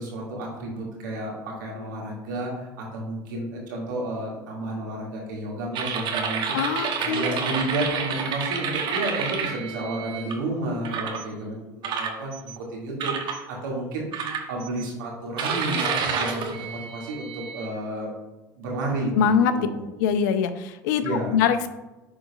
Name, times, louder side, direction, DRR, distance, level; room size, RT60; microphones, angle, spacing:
voice 1, 0.0-6.6 7.0-18.1 18.6-19.8 21.0-21.4, right 1 dB, 85° right, -3 dB, 2.2 m, -31 dB
sound 1, 5.7-10.3 10.9-11.2 11.8-12.6 13.0-13.4 14.1-14.8 15.4-17.7, right 6 dB, 50° right, 1.1 m, -29 dB
voice 2, 6.5-7.4 19.2-19.5 20.0-21.0 21.3-21.7, left 7 dB, 75° left, 11 dB, 0.5 m, -22 dB
10.5 x 4.0 x 2.4 m, 1.0 s
hypercardioid pair, 85°, 10 cm